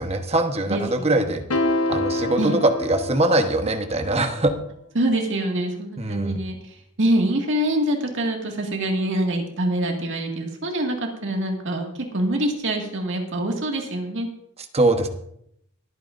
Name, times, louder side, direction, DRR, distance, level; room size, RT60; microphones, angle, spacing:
voice 1, 0.0-1.4 1.9-4.5 6.0-6.4 14.7-15.1, right 2 dB, 30° right, 6 dB, 1.1 m, -22 dB
voice 2, 0.7-1.1 2.4-2.5 5.0-6.6 7.0-11.9 12.1-14.3, right 1 dB, 60° right, 1 dB, 2.0 m, -25 dB
sound 1, 1.5-3.9, left 1 dB, 85° left, 1.0 m, -26 dB
24.0 x 9.2 x 2.6 m, 0.75 s
head